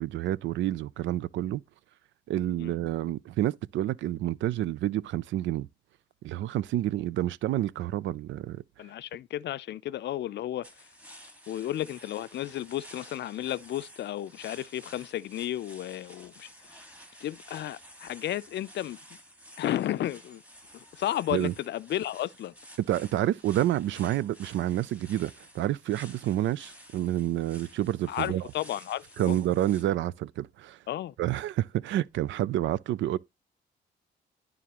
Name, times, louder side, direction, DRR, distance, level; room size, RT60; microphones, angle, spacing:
voice 1, 0.0-1.6 2.3-5.7 6.2-8.6 21.3-21.5 22.9-28.4 29.2-30.8 31.2-33.2, right 13 dB, 75° right, 0.4 m, -29 dB
voice 2, 8.8-10.7 11.5-16.5 17.2-19.0 19.6-20.4 20.7-22.5 28.1-29.4 30.9-31.1, left 12 dB, 60° left, 0.5 m, -33 dB
sound 1, 10.6-29.8, equal, 5° right, 1.8 m, -52 dB
11.0 x 3.7 x 3.0 m
cardioid pair, 90°, 20 cm